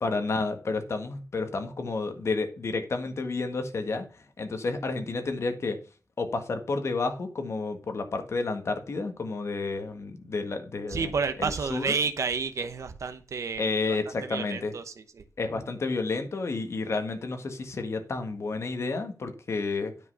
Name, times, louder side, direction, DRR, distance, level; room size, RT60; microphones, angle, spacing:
voice 1, 0.0-5.8 6.2-11.1 11.4-11.8 13.6-14.7 15.4-19.9, left 3 dB, 60° left, 1.7 m, -31 dB
voice 2, 10.9-15.2, right 5 dB, 70° right, 1.0 m, -31 dB
9.5 x 5.5 x 5.5 m
wide cardioid pair, 160°, 5 cm